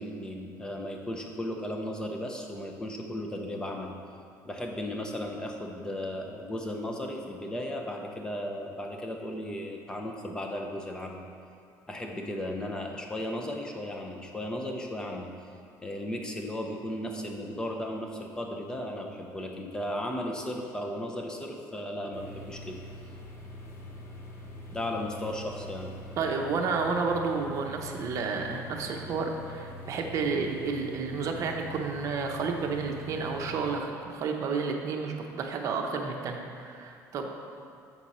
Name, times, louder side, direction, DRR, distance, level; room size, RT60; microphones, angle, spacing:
voice 1, 0.0-4.0 4.4-11.2 11.9-15.3 15.8-22.8 24.7-25.9, left 1 dB, 10° left, 1 dB, 0.7 m, -35 dB
sound 1, 22.1-33.8, left 1 dB, 40° left, 1.0 m, -44 dB
voice 2, 26.2-37.4, right 4 dB, 45° right, 2 dB, 0.8 m, -31 dB
7.3 x 4.5 x 5.5 m, 2.5 s
cardioid pair, 145°, 7 cm